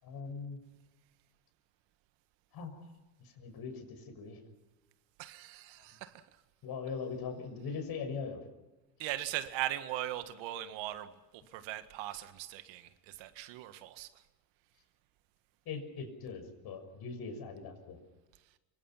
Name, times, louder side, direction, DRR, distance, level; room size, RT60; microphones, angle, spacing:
voice 1, 0.0-0.6 2.5-2.7 3.2-4.4 6.6-8.4 15.6-18.0, left 5 dB, 50° left, 6.7 m, -41 dB
voice 2, 5.2-6.2 9.0-14.2, right 13 dB, 65° right, 1.9 m, -40 dB
26.5 x 24.0 x 5.8 m
cardioid pair, 120°, 48 cm